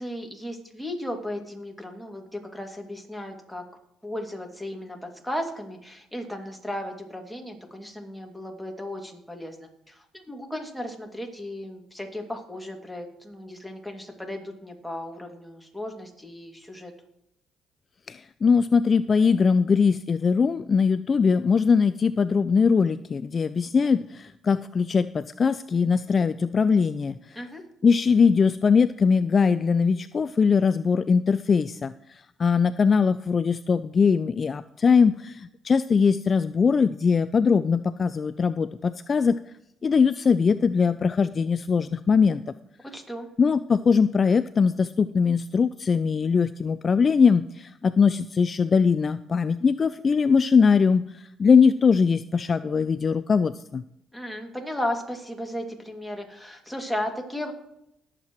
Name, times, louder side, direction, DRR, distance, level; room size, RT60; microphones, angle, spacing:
voice 1, 0.0-3.6 4.0-5.0 5.2-16.9 27.4-27.6 42.9-43.3 54.1-57.5, left 1 dB, ahead, 1 dB, 2.5 m, -35 dB
voice 2, 18.1-27.4 27.8-39.4 39.8-42.4 43.4-53.8, left 5 dB, 40° left, 13 dB, 0.3 m, -21 dB
19.5 x 7.4 x 3.1 m, 0.80 s
supercardioid pair, 75°, 0 cm